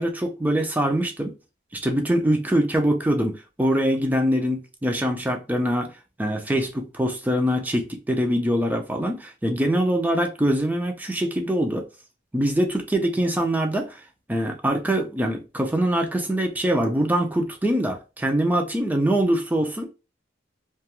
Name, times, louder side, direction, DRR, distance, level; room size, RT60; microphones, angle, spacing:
voice 1, 0.0-1.3 1.8-5.9 6.2-11.8 12.3-14.0 14.3-19.9, right 1 dB, 10° right, 0.4 m, -23 dB
2.4 x 2.2 x 2.8 m
head